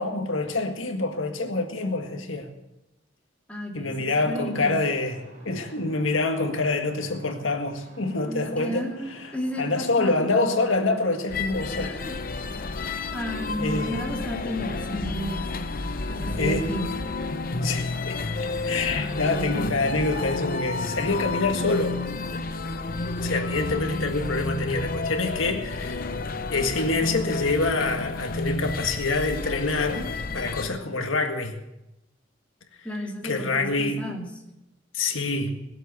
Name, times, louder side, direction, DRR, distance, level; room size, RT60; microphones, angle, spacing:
voice 1, 0.0-2.5 3.7-9.3 9.6-12.0 13.6-14.0 16.4-16.7 17.6-22.0 23.2-26.1 26.5-31.6 33.2-34.0 34.9-35.5, left 3 dB, 90° left, 1.8 m, -26 dB
voice 2, 3.5-4.8 8.3-10.3 11.8-12.1 13.1-15.7 16.1-16.9 19.2-19.7 32.8-34.3, equal, 5° left, 2.9 m, -33 dB
sound 1, 4.4-24.0, right 1 dB, 45° right, 4.4 m, -50 dB
sound 2, 11.3-30.7, left 3 dB, 45° left, 0.8 m, -31 dB
20.0 x 7.9 x 7.9 m
head